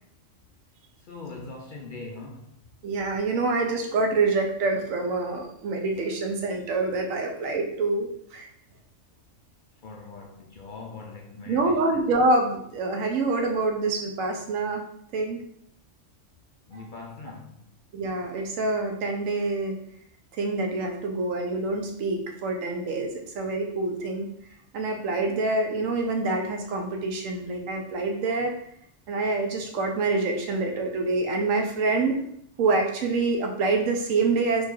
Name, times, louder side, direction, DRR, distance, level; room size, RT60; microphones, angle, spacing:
voice 1, 1.1-2.5 9.8-12.0 16.7-17.6, left 3 dB, 70° left, 0.4 m, -41 dB
voice 2, 2.8-8.5 11.5-14.8 15.1-15.4 17.9-19.8 20.4-24.3 24.7-28.5 29.1-32.2 32.6-34.7, right 3 dB, 80° right, 1.1 m, -26 dB
3.9 x 2.7 x 4.6 m
omnidirectional pair, 1.4 m